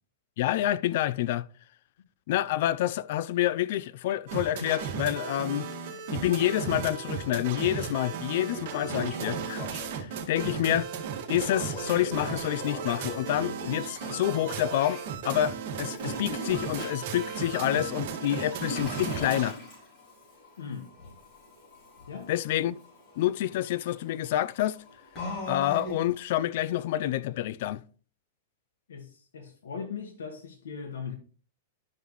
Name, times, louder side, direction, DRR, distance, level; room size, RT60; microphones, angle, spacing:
voice 1, 0.4-1.5 2.3-5.7 6.1-9.7 9.9-10.9 11.3-19.6 22.3-22.8 23.2-24.8 25.5-27.8, left 13 dB, 55° left, 0.5 m, -28 dB
sound 1, 4.3-19.5, right 7 dB, 55° right, 2.0 m, -35 dB
Toilet flush, 7.7-7.8 8.3-10.2 11.4-15.0 15.9-26.2, left 1 dB, 30° left, 5.0 m, -41 dB
voice 2, 20.6-20.9 22.1-22.3 28.9-31.2, left 6 dB, 85° left, 1.5 m, -39 dB
11.5 x 5.5 x 3.1 m
hypercardioid pair, 145°, 0 cm